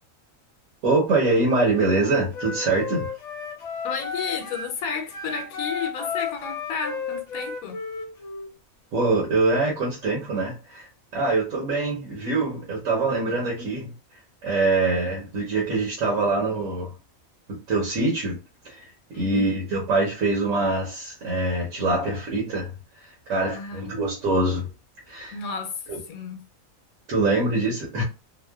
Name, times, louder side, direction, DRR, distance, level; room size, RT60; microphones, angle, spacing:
voice 1, 0.8-3.1 8.9-13.9 14.4-16.9 17.7-18.4 18.6-18.9 19.1-22.7 23.0-24.7 25.1-25.3 25.9-26.0 27.1-28.0, right 3 dB, 70° right, 1.2 m, -24 dB
Wind instrument woodwind instrument, 1.5-4.7 5.1-8.5, left 5 dB, 65° left, 1.0 m, -33 dB
voice 2, 3.8-7.8 19.1-19.6 23.4-23.9 25.3-26.5, left 6 dB, 85° left, 1.1 m, -32 dB
2.9 x 2.1 x 2.2 m
omnidirectional pair, 1.4 m